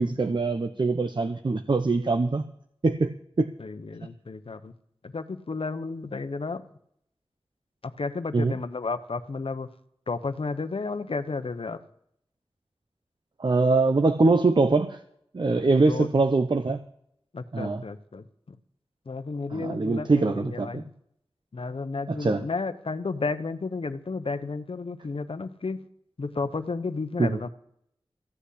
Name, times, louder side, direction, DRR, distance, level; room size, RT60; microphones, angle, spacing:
voice 1, 0.0-2.4 2.8-3.1 3.4-3.5 8.3-8.5 13.4-15.0 15.3-16.8 17.5-17.8 19.5-20.8 22.1-22.4 27.2-27.3, right 3 dB, 50° right, 0.7 m, -23 dB
voice 2, 3.6-4.7 5.0-6.7 7.8-9.7 10.1-11.8 15.8-16.1 17.3-18.6 19.1-20.9 21.5-25.8 26.2-27.5, left 4 dB, 65° left, 0.9 m, -32 dB
14.5 x 8.1 x 8.4 m
wide cardioid pair, 70°, 10 cm